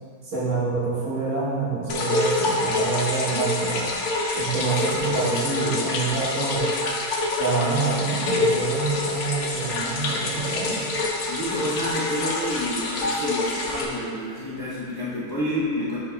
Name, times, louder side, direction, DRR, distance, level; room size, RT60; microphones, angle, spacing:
voice 1, 0.2-3.9 4.3-6.6 7.4-10.9, right 3 dB, 60° right, -8 dB, 1.6 m, -26 dB
sound 1, 1.9-13.9, left 2 dB, 60° left, 0.9 m, -26 dB
voice 2, 11.3-16.0, equal, 20° left, -9 dB, 0.8 m, -29 dB
9.6 x 4.4 x 2.3 m, 2.2 s
omnidirectional pair, 1.5 m